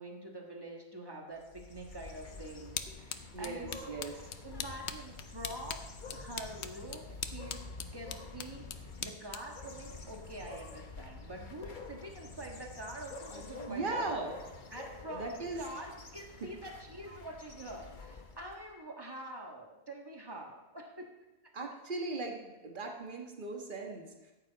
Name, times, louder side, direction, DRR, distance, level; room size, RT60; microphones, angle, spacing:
voice 1, 0.0-3.9 4.4-14.1 14.7-21.1 21.4-21.5, right 1 dB, 20° right, 0 dB, 1.6 m, -46 dB
sound 1, 1.4-18.7, left 3 dB, 45° left, 1.2 m, -48 dB
sound 2, 2.1-10.8, left 8 dB, 80° left, 1.0 m, -44 dB
voice 2, 3.3-4.1 13.7-14.4 15.1-15.6 21.5-24.3, right 3 dB, 50° right, 2 dB, 1.6 m, -38 dB
13.5 x 9.0 x 4.1 m, 1.1 s
omnidirectional pair, 1.1 m